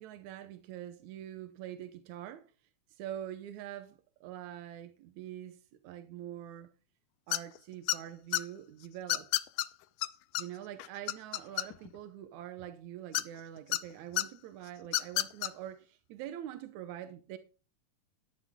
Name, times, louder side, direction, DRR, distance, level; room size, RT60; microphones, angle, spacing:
voice 1, 0.0-2.5 2.9-6.7 7.3-9.3 10.4-17.4, right 11 dB, 75° right, 1.8 m, -44 dB
sound 1, 7.3-7.6 7.9-8.4 9.1-9.7 10.0-10.1 10.4-10.5 10.8-12.0 13.1-13.8 14.2-14.3 14.9-15.5, left 16 dB, 75° left, 2.1 m, -30 dB
13.5 x 10.0 x 3.6 m
omnidirectional pair, 4.1 m